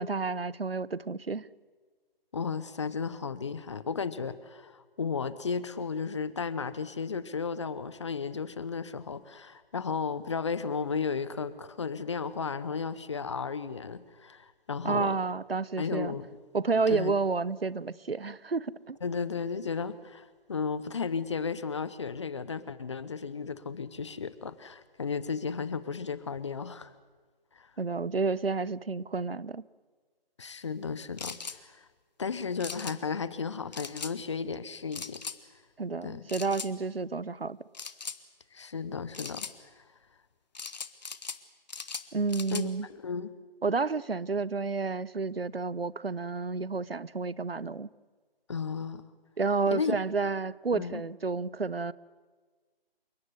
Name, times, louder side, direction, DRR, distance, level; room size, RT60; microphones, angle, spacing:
voice 1, 0.0-1.5 14.8-16.1 16.5-19.0 27.8-29.6 35.8-37.6 42.1-42.9 43.6-47.9 49.4-51.9, right 4 dB, 70° right, 1.0 m, -30 dB
voice 2, 2.3-15.2 15.8-16.3 16.9-17.1 19.0-26.9 27.5-27.7 30.4-31.9 32.2-35.2 36.0-36.3 38.5-39.5 39.8-39.9 42.5-43.3 48.5-49.0 49.7-50.0 50.7-51.0, left 5 dB, 30° left, 1.0 m, -34 dB
sound 1, 31.2-31.6 32.6-33.0 33.7-34.1 34.9-35.4 36.3-36.7 37.7-38.2 39.1-39.5 40.5-41.4 41.7-42.7, left 5 dB, 45° left, 1.5 m, -39 dB
29.0 x 17.5 x 9.7 m
figure-of-eight pair, 150°, 30 cm